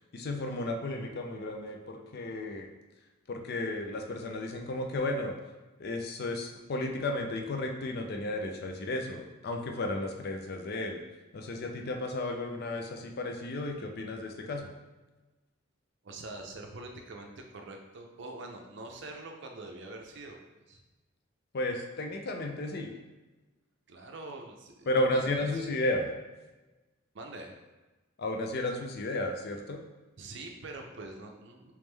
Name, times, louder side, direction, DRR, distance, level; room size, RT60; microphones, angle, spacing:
voice 1, 0.1-2.7 3.3-5.3 5.8-11.0 11.3-14.7 21.5-22.9 24.9-26.1 28.2-29.8, left 1 dB, 50° left, 3 dB, 0.4 m, -33 dB
voice 2, 16.0-20.4 20.7-20.8 23.9-25.7 27.1-27.5 30.2-31.7, right 2 dB, 60° right, 3 dB, 0.5 m, -44 dB
3.5 x 3.1 x 3.2 m, 1.1 s
head